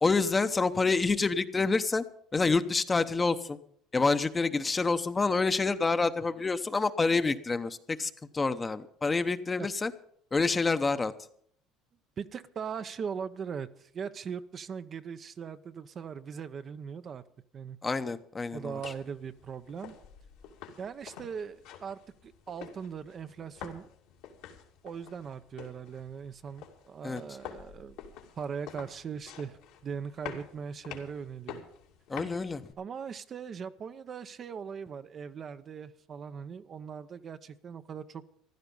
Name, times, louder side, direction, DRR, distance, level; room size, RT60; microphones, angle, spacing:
voice 1, 0.0-2.0 2.3-3.6 3.9-9.9 10.3-11.1 17.8-18.8 27.0-27.2 32.1-32.6, left 4 dB, 20° left, 10 dB, 0.8 m, -27 dB
voice 2, 12.2-17.2 17.5-17.8 18.5-20.0 20.8-23.9 24.8-28.0 28.4-31.6 32.8-38.2, right 6 dB, 40° right, 10 dB, 0.7 m, -40 dB
sound 1, 18.5-32.7, left 8 dB, 80° left, 2.6 m, -48 dB
15.0 x 12.0 x 5.4 m, 0.65 s
supercardioid pair, 90°, 0 cm